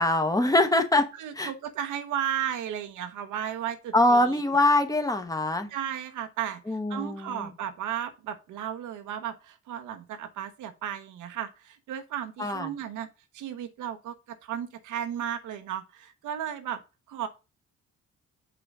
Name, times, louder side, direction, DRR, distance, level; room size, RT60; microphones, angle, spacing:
voice 1, 0.0-1.1 1.3-1.5 3.9-5.7 6.7-7.5 12.4-12.7, left 2 dB, 10° left, 1.1 m, -23 dB
voice 2, 1.2-4.6 5.7-13.1 13.3-16.8 17.1-17.3, right 10 dB, 85° right, 1.1 m, -34 dB
7.0 x 5.7 x 3.6 m
cardioid pair, 90°, 30 cm